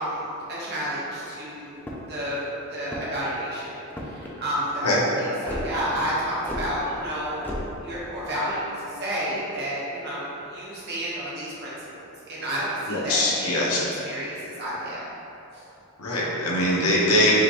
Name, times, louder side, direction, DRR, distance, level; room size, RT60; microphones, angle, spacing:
voice 1, 0.0-1.8 2.1-3.7 4.0-7.4 7.7-15.1 15.5-15.6, equal, 50° right, -8 dB, 1.2 m, -31 dB
sound 1, 1.8-2.2 2.8-3.3 3.9-4.3 5.4-5.7 6.4-6.7 7.4-7.6, left 1 dB, 10° left, 0.4 m, -33 dB
voice 2, 12.9-13.8 16.0-17.4, left 1 dB, 85° left, -5 dB, 0.9 m, -22 dB
4.9 x 3.0 x 3.0 m, 2.9 s
head